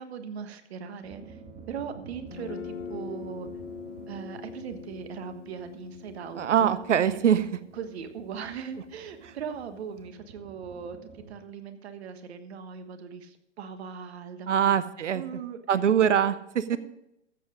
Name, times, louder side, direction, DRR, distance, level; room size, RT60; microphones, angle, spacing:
voice 1, 0.0-1.4 1.7-3.5 4.1-7.2 7.7-14.7 15.1-16.1 16.7-16.8, right 7 dB, 60° right, 9 dB, 1.4 m, -39 dB
sound 1, 1.0-11.3, right 4 dB, 25° right, 2.1 m, -50 dB
Guitar, 2.3-10.0, left 6 dB, 75° left, 1.3 m, -44 dB
voice 2, 6.3-7.4 14.5-15.2 15.7-16.8, right 8 dB, 80° right, 15 dB, 0.7 m, -23 dB
14.0 x 7.5 x 5.0 m, 0.83 s
hypercardioid pair, 115°, 36 cm